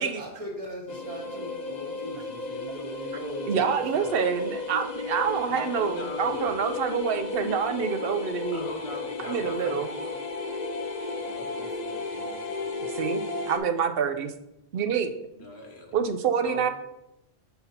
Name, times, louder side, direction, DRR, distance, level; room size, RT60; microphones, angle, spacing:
voice 1, 0.0-4.1 9.2-9.8 11.2-12.3, equal, 35° right, -4 dB, 1.4 m, -40 dB
sound 1, 0.9-13.6, left 3 dB, 50° left, 0.7 m, -34 dB
voice 2, 3.4-8.6 9.2-9.9 13.0-14.3 14.7-15.1 15.9-16.7, right 7 dB, 65° right, 8 dB, 0.8 m, -27 dB
voice 3, 5.1-6.7 8.5-10.2 12.2-12.9 15.3-16.0 16.4-16.7, left 2 dB, 90° left, 2 dB, 1.3 m, -42 dB
6.8 x 4.0 x 4.2 m, 0.90 s
omnidirectional pair, 1.1 m